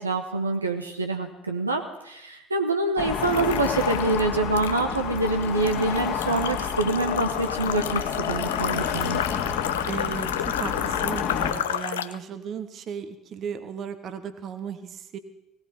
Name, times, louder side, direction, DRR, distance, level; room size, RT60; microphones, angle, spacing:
voice 1, 0.0-9.2, right 3 dB, 85° right, 4 dB, 1.0 m, -26 dB
sound 1, 3.0-11.5, left 7 dB, 55° left, 2.2 m, -30 dB
sound 2, 3.2-4.2 4.6-12.2, left 10 dB, 75° left, 0.5 m, -31 dB
voice 2, 9.8-15.2, right 7 dB, 45° right, 10 dB, 1.1 m, -36 dB
18.0 x 17.0 x 4.2 m, 0.86 s
figure-of-eight pair, 60°, 0 cm